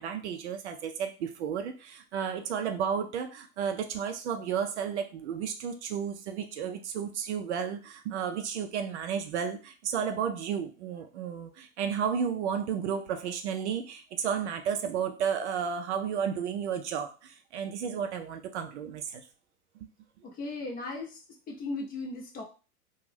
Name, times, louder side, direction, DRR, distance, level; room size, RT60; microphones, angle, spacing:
voice 1, 0.0-19.2, right 7 dB, 50° right, 6 dB, 0.4 m, -32 dB
voice 2, 20.4-21.2 21.5-22.4, left 3 dB, 20° left, 0 dB, 0.6 m, -36 dB
2.5 x 2.2 x 3.2 m, 0.34 s
figure-of-eight pair, 95°, 45 cm